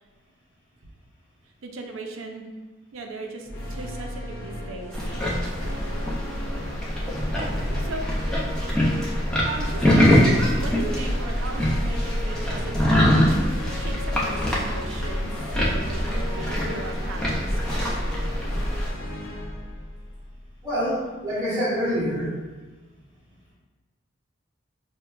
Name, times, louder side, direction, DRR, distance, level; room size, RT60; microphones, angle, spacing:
voice 1, 1.6-2.5 2.9-5.1 7.8-8.2 9.1-18.4, right 3 dB, 80° right, 3 dB, 0.4 m, -38 dB
sound 1, 3.4-20.9, left 1 dB, 80° left, 0.5 m, -34 dB
sound 2, 4.9-18.9, equal, 5° left, 0.4 m, -24 dB
voice 2, 20.6-22.3, equal, 20° right, -10 dB, 0.9 m, -26 dB
4.5 x 2.1 x 2.3 m, 1.2 s
head